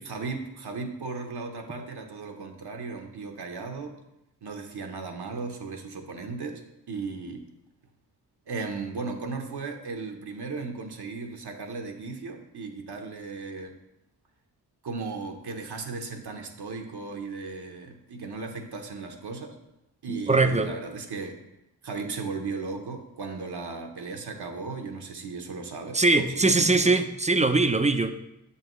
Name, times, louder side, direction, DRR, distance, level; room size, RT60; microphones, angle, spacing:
voice 1, 0.1-4.0 4.4-7.5 8.5-13.7 14.8-19.6 20.0-21.4 21.8-27.0, right 4 dB, 75° right, 3 dB, 0.9 m, -36 dB
voice 2, 20.3-20.7 25.9-28.1, right 3 dB, 20° right, 9 dB, 0.5 m, -21 dB
6.8 x 5.6 x 3.1 m, 0.86 s
cardioid pair, 45°, 40 cm